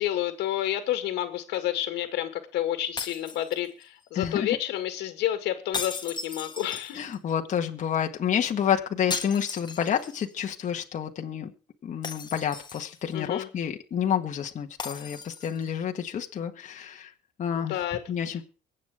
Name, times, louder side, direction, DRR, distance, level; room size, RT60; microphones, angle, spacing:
voice 1, 0.0-7.0 13.1-13.5 17.5-18.0 18.3-18.4, left 12 dB, 80° left, 6 dB, 2.0 m, -30 dB
sound 1, 3.0-4.0 5.7-7.3 9.1-10.3 10.6-10.7 12.0-13.1 14.8-15.7, left 5 dB, 25° left, 1.5 m, -37 dB
voice 2, 4.1-4.6 7.0-11.5 11.8-17.1 17.4-17.8 18.1-18.4, left 8 dB, 45° left, 3 dB, 1.7 m, -29 dB
23.5 x 8.6 x 3.6 m, 0.36 s
cardioid pair, 110°, 17 cm